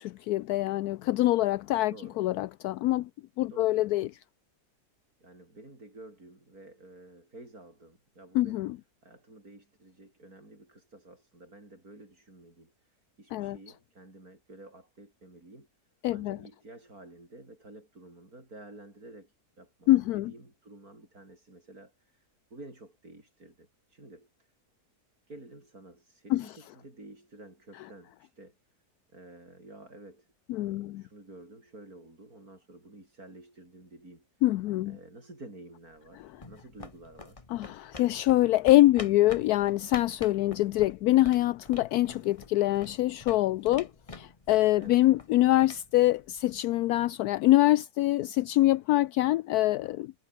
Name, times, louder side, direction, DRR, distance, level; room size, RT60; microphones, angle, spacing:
voice 1, 0.0-3.1 3.4-4.1 8.3-8.8 13.3-13.6 16.0-16.4 19.9-20.3 26.3-26.5 30.5-31.0 34.4-35.0 37.5-50.1, left 16 dB, 75° left, 1.0 m, -25 dB
voice 2, 1.9-2.2 3.5-3.8 5.2-8.7 9.0-15.7 16.1-24.5 25.3-28.5 29.1-30.3 30.6-34.3 34.9-37.4 44.8-45.0, right 2 dB, 65° right, 8.3 m, -51 dB
sound 1, 36.0-46.8, left 3 dB, 20° left, 1.5 m, -47 dB
omnidirectional pair, 1.7 m